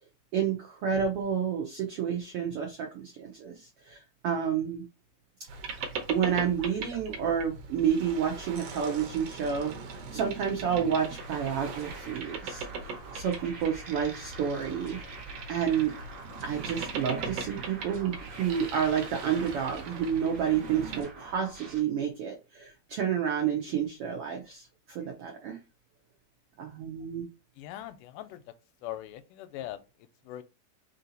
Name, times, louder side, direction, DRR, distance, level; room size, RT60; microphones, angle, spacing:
voice 1, 0.3-4.8 6.1-15.0 15.5-15.9 16.4-25.6 26.6-27.2, right 8 dB, 80° right, 1.3 m, -30 dB
Boat Water vehicle, 5.5-21.0, right 4 dB, 65° right, 1.7 m, -40 dB
sound 1, 11.2-21.8, right 2 dB, 40° right, 1.2 m, -46 dB
voice 2, 27.6-28.4 28.8-29.8 30.3-30.4, left 13 dB, 85° left, 2.1 m, -40 dB
4.7 x 2.8 x 3.9 m
omnidirectional pair, 3.7 m